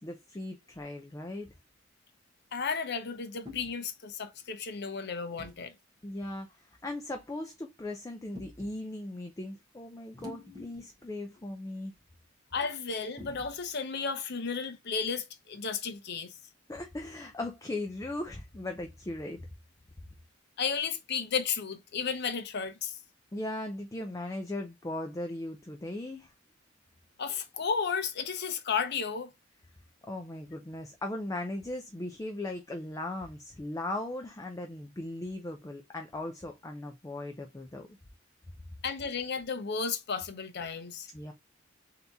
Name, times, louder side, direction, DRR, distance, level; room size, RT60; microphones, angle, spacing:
voice 1, 0.0-1.5 6.0-11.9 16.7-19.4 23.3-26.3 30.1-37.9 41.1-41.3, left 1 dB, 15° left, 0.5 m, -38 dB
sound 1, 1.5-1.8 3.5-3.8 5.4-5.6 6.7-6.9 8.4-8.8 10.1-11.0 11.3-11.4 13.2-13.7, left 3 dB, 20° right, 1.4 m, -47 dB
voice 2, 2.5-5.7 12.5-16.3 20.6-22.9 27.2-29.3 38.8-41.1, left 6 dB, 55° left, 0.7 m, -33 dB
3.5 x 2.9 x 3.8 m
head